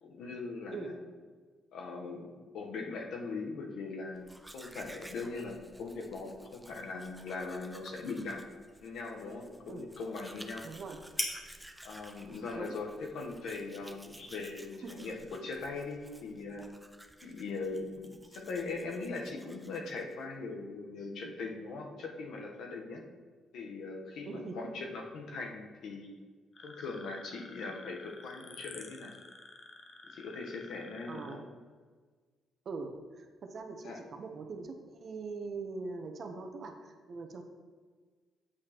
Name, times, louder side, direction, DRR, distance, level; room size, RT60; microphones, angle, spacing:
voice 1, 0.0-1.0 1.7-8.4 8.8-10.6 11.8-16.7 17.2-23.0 23.5-26.1 26.6-29.2 30.0-31.4 33.8-34.0, left 3 dB, 75° left, 2 dB, 0.9 m, -40 dB
Domestic sounds home sounds, 4.2-20.2, right 1 dB, 5° right, 0.4 m, -54 dB
sound 1, 6.8-14.6, left 1 dB, 25° left, 1.2 m, -46 dB
voice 2, 10.6-11.0 12.5-12.7 14.8-15.0 24.2-24.7 31.1-31.4 32.6-37.4, right 4 dB, 50° right, 4 dB, 0.8 m, -42 dB
sound 2, 26.5-31.4, left 3 dB, 45° left, 0.7 m, -51 dB
8.6 x 4.8 x 2.9 m, 1.5 s
cardioid pair, 90°, 0 cm